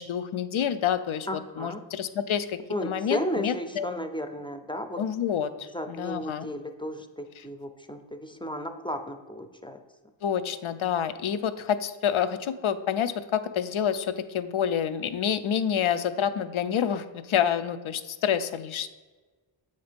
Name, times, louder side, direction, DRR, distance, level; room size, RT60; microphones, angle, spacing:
voice 1, 0.0-3.9 4.9-6.5 7.4-7.5 10.2-18.9, left 8 dB, 75° left, 11 dB, 0.5 m, -28 dB
voice 2, 1.3-1.8 2.7-5.0 5.7-9.8, equal, 10° left, 6 dB, 0.4 m, -34 dB
7.8 x 2.7 x 5.1 m, 1.3 s
wide cardioid pair, 60°, 49 cm